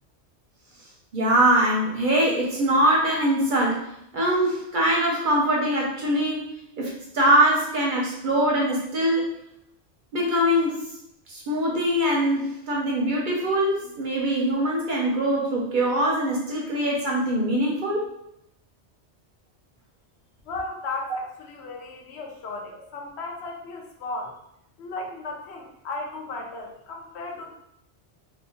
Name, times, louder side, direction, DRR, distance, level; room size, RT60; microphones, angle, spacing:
voice 1, 1.1-3.8 4.1-6.5 6.8-9.3 10.1-10.8 11.3-18.0, right 1 dB, 55° right, -2 dB, 0.6 m, -23 dB
voice 2, 20.5-24.3 24.8-27.5, left 3 dB, 70° left, 1 dB, 0.8 m, -35 dB
2.8 x 2.1 x 2.7 m, 0.77 s
omnidirectional pair, 1.2 m